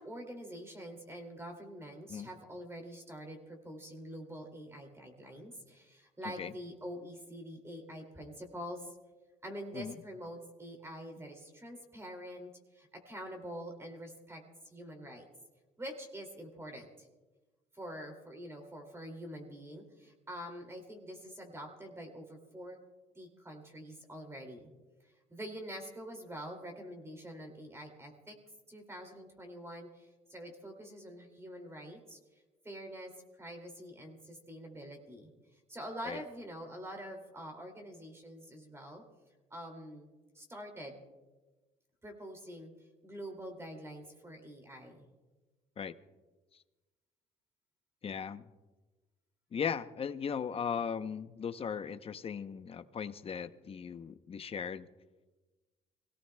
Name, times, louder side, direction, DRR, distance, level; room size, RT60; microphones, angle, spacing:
voice 1, 0.0-9.0 9.4-15.3 15.8-17.1 17.7-22.8 23.1-24.7 25.3-28.4 28.7-32.2 32.6-35.3 35.7-39.0 39.5-40.1 40.3-41.0 42.0-42.7 43.0-45.1, equal, 15° right, 3 dB, 2.5 m, -46 dB
voice 2, 48.0-48.4 49.5-54.9, left 7 dB, 35° left, 11 dB, 0.7 m, -37 dB
26.5 x 17.0 x 2.2 m, 1.2 s
cardioid pair, 110°, 17 cm